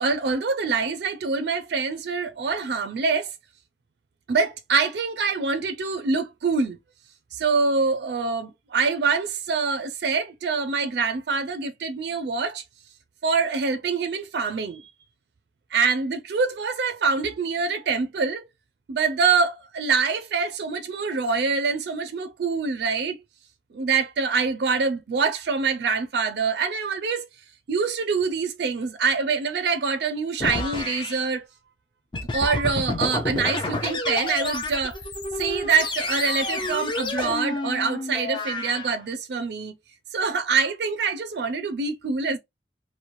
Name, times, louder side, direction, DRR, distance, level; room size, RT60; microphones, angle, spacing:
voice 1, 0.0-3.3 4.3-6.8 7.3-12.6 13.2-14.9 15.7-18.5 18.9-23.2 23.7-27.3 27.7-31.5 32.3-35.0 35.4-39.7 40.1-42.4, right 4 dB, 65° right, 0.4 m, -25 dB
sound 1, 30.4-31.2 32.1-39.0, left 2 dB, 25° left, 0.5 m, -29 dB
3.0 x 2.1 x 2.5 m
head